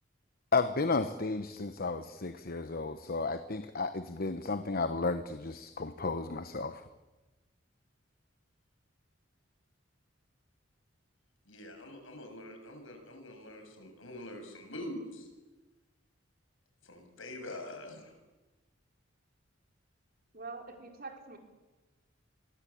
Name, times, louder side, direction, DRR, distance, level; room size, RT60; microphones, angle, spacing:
voice 1, 0.5-6.8, left 3 dB, 50° left, 10 dB, 1.1 m, -33 dB
voice 2, 11.5-15.3 16.8-18.1, left 1 dB, 85° left, 5 dB, 7.3 m, -44 dB
voice 3, 20.3-21.4, right 3 dB, 50° right, 4 dB, 4.8 m, -44 dB
28.5 x 23.0 x 8.6 m, 1.1 s
head